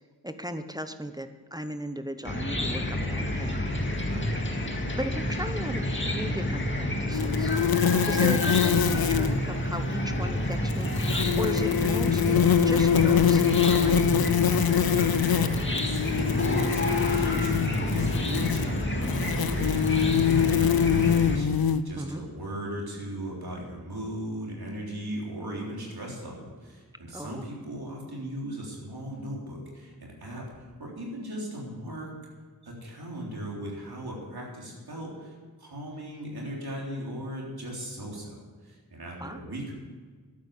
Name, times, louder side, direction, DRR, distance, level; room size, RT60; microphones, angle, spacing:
voice 1, 0.2-3.6 4.9-7.5 8.0-14.4 22.0-22.2 27.1-27.4 39.2-39.4, right 1 dB, 10° right, 8 dB, 0.9 m, -36 dB
Chicken rooster / Cricket, 2.2-21.4, left 1 dB, 30° left, 2.0 m, -29 dB
sound 1, 7.1-9.4 10.7-21.8, left 8 dB, 70° left, 0.6 m, -24 dB
voice 2, 14.7-32.1 32.6-39.7, right 1 dB, 75° right, -3 dB, 3.7 m, -38 dB
11.5 x 8.8 x 7.1 m, 1.5 s
cardioid pair, 45°, 38 cm